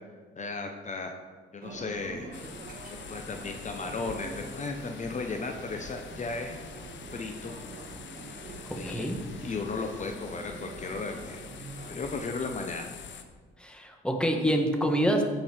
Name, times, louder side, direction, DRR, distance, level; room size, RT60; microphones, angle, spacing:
voice 1, 0.4-1.1 1.5-2.4 3.1-6.6 7.1-7.5 8.7-9.1 9.4-11.4 11.9-12.9, left 4 dB, 40° left, 4 dB, 1.0 m, -35 dB
sound 1, 1.6-12.2, right 3 dB, 45° right, 1.6 m, -45 dB
sound 2, 2.3-13.2, left 7 dB, 65° left, 1.0 m, -46 dB
voice 2, 8.7-9.2 13.6-15.2, equal, 5° left, 3 dB, 1.5 m, -27 dB
15.5 x 5.6 x 4.5 m, 1.5 s
cardioid pair, 90°, 20 cm